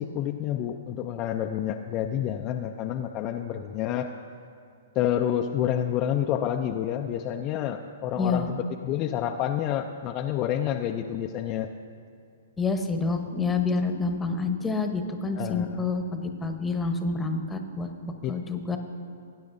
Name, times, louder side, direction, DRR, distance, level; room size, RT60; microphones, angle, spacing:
voice 1, 0.0-4.1 5.0-11.7 15.4-15.9 18.2-18.3, left 10 dB, 35° left, 3 dB, 0.4 m, -29 dB
voice 2, 8.2-8.5 12.6-18.8, left 4 dB, 10° left, 5 dB, 1.0 m, -28 dB
19.0 x 9.6 x 2.6 m, 2.6 s
hypercardioid pair, 130°, 0 cm